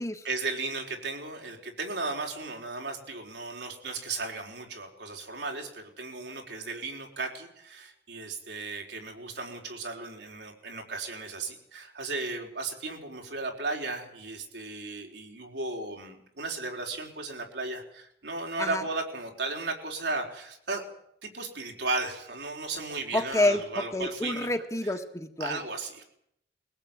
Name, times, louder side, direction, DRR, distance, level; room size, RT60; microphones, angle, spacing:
voice 1, 0.2-20.8 21.2-24.5 24.8-24.9 25.4-26.0, right 3 dB, 75° right, 2 dB, 4.5 m, -35 dB
voice 2, 23.1-25.6, left 1 dB, 15° left, 5 dB, 1.6 m, -28 dB
22.5 x 17.0 x 8.9 m, 0.73 s
head